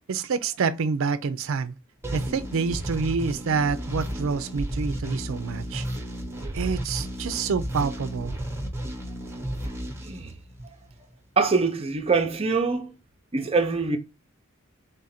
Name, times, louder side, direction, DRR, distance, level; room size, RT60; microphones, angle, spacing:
voice 1, 0.1-1.8 2.1-5.8 6.5-8.4, right 5 dB, 75° right, 0.4 m, -27 dB
sound 1, 2.0-10.9, right 1 dB, 10° right, 0.9 m, -33 dB
voice 2, 10.0-10.3 11.4-12.9 13.3-14.0, right 4 dB, 30° right, 0.6 m, -24 dB
3.9 x 2.5 x 4.2 m
head